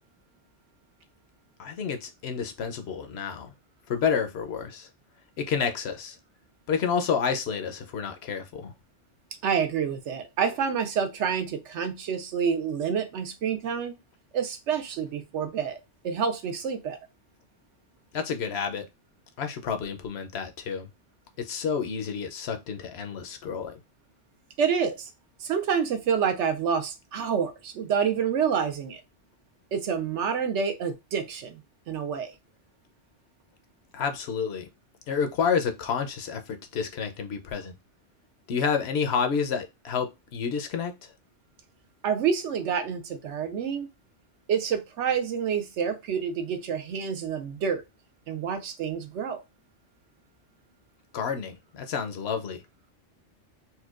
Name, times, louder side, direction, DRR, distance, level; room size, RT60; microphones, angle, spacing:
voice 1, 1.6-3.5 3.9-4.9 5.4-6.2 6.7-8.7 18.1-18.9 19.4-20.9 21.4-23.7 33.9-34.7 35.1-37.7 38.5-41.1 51.1-52.6, left 6 dB, 70° left, 0.8 m, -29 dB
voice 2, 9.4-14.0 14.3-17.0 24.6-25.1 25.4-29.0 29.7-31.6 31.9-32.3 42.0-43.9 44.5-47.8 48.3-49.4, right 7 dB, 80° right, 1.0 m, -28 dB
4.3 x 2.2 x 2.3 m
omnidirectional pair, 1.2 m